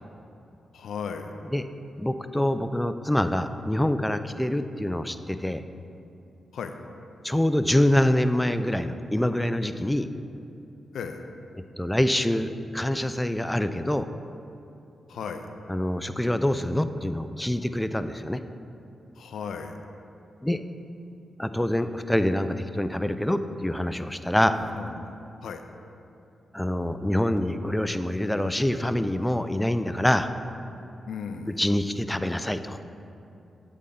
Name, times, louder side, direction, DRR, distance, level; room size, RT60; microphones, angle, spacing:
voice 1, 0.7-1.3 6.5-6.7 10.9-11.3 15.1-15.5 19.2-19.8 24.5-25.1 25.4-25.6 31.1-31.6, left 6 dB, 80° left, 7 dB, 0.4 m, -36 dB
voice 2, 2.0-5.6 7.2-10.1 11.8-14.1 15.7-18.4 20.4-20.6 21.4-24.5 26.5-30.3 31.6-32.8, left 1 dB, 10° left, 10 dB, 0.3 m, -25 dB
8.4 x 4.1 x 3.7 m, 2.8 s
cardioid pair, 55°, 0 cm